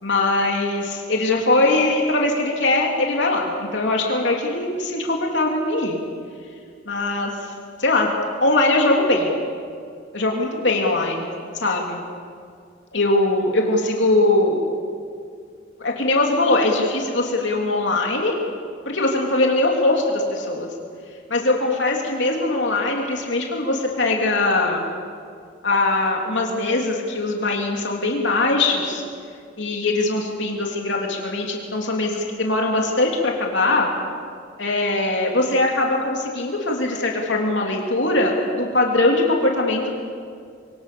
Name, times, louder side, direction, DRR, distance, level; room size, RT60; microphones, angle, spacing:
voice 1, 0.0-6.0 6.9-7.3 7.8-8.1 8.4-9.3 10.1-11.3 11.6-12.0 12.9-14.6 15.8-18.3 18.8-20.7 21.3-24.8 25.6-29.0 29.6-33.9 34.6-39.9, left 2 dB, 70° left, 0 dB, 3.4 m, -21 dB
27.5 x 24.0 x 7.1 m, 2.2 s
head